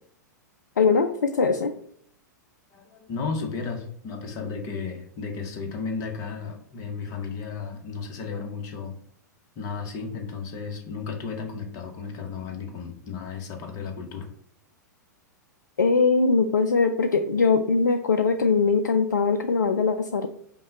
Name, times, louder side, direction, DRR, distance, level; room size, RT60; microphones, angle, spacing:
voice 1, 0.8-1.7 15.8-20.3, left 4 dB, 70° left, 8 dB, 0.4 m, -21 dB
voice 2, 2.7-8.9 9.5-14.3, left 5 dB, 35° left, 4 dB, 0.9 m, -34 dB
5.4 x 2.2 x 4.1 m, 0.65 s
figure-of-eight pair, 100°, 10 cm